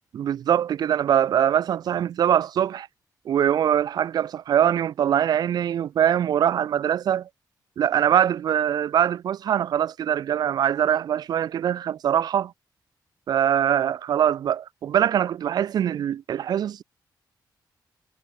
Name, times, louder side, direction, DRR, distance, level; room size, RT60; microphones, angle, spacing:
voice 1, 0.1-2.9 3.3-7.3 7.8-12.5 13.3-16.8, right 9 dB, 60° right, 0.5 m, -23 dB
wide cardioid pair, 170°, 8 cm